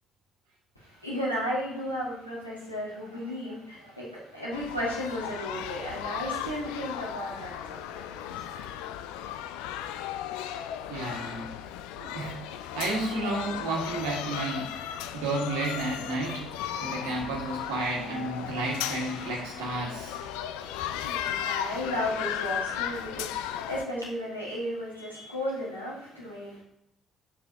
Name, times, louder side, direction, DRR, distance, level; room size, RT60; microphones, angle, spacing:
voice 1, 0.8-8.5 20.3-26.6, equal, 90° left, -7 dB, 1.7 m, -34 dB
sound 1, 4.5-23.8, left 10 dB, 65° left, 0.3 m, -36 dB
voice 2, 10.9-11.5 12.0-16.5 16.8-20.2, right 2 dB, 70° right, 0 dB, 1.4 m, -32 dB
8.1 x 7.2 x 2.7 m, 0.80 s
figure-of-eight pair, 45°, 0 cm